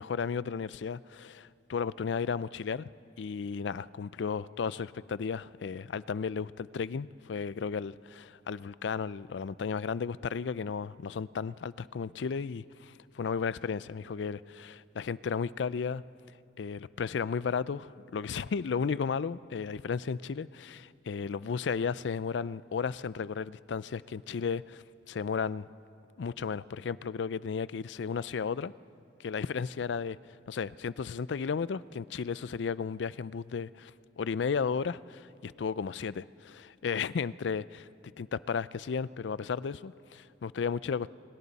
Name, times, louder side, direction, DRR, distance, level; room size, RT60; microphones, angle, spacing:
voice 1, 0.0-2.9 3.2-16.0 16.6-25.7 26.2-28.7 29.2-30.2 30.5-37.9 38.2-41.1, left 5 dB, 80° left, 18 dB, 0.4 m, -34 dB
30.0 x 24.5 x 4.1 m, 2.7 s
head